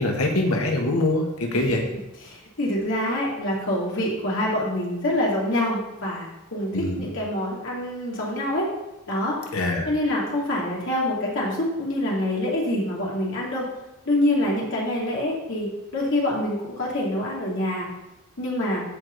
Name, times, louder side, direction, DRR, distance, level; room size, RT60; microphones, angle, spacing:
voice 1, 0.0-1.8 6.7-7.1 9.5-9.9, left 2 dB, 85° left, 1 dB, 1.5 m, -23 dB
voice 2, 2.2-8.7 9.1-9.4 9.8-13.7 14.0-17.9 18.4-18.8, left 1 dB, 60° left, -4 dB, 2.9 m, -26 dB
14.5 x 4.9 x 4.0 m, 0.98 s
head